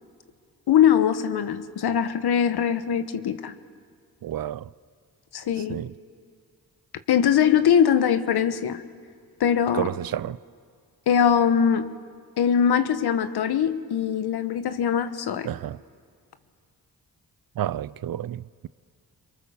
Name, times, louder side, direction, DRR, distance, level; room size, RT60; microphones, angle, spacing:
voice 1, 0.7-3.5 5.3-5.8 7.1-8.8 9.4-9.9 11.1-11.9 12.4-15.5, left 8 dB, 80° left, 1.3 m, -22 dB
voice 2, 4.2-4.7 5.7-5.9 9.7-10.4 15.4-15.8 17.6-18.7, right 11 dB, 65° right, 0.6 m, -30 dB
26.5 x 23.5 x 7.1 m
cardioid pair, 50°, 39 cm